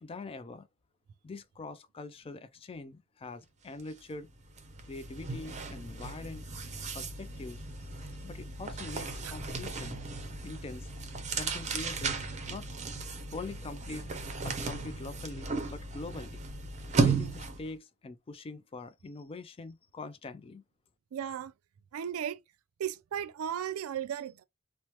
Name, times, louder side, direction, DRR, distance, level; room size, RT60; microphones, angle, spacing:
voice 1, 0.0-0.7 1.2-4.3 4.9-6.5 6.9-7.9 8.2-10.0 10.4-10.9 11.3-12.7 13.3-14.1 14.4-16.4 17.0-20.6, left 3 dB, 25° left, 0.3 m, -43 dB
sound 1, 3.8-4.0 4.3-17.7, right 4 dB, 35° right, 0.6 m, -35 dB
voice 2, 21.1-21.5 21.9-22.4 22.8-24.4, right 9 dB, 85° right, 0.3 m, -35 dB
3.0 x 2.1 x 2.9 m
head